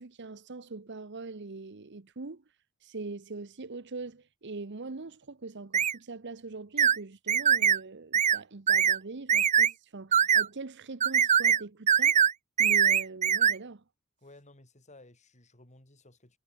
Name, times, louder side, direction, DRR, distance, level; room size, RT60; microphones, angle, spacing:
voice 1, 0.0-2.4 2.8-12.2 12.6-13.8, right 3 dB, 55° right, 0.9 m, -42 dB
sound 1, 5.7-5.9 6.8-7.0 7.3-7.8 8.1-8.4 8.7-9.0 9.3-9.7 10.1-10.5 11.0-11.6 11.9-12.3 12.6-13.5, right 8 dB, 35° right, 0.4 m, -22 dB
voice 2, 14.2-16.4, left 2 dB, 35° left, 4.6 m, -56 dB
head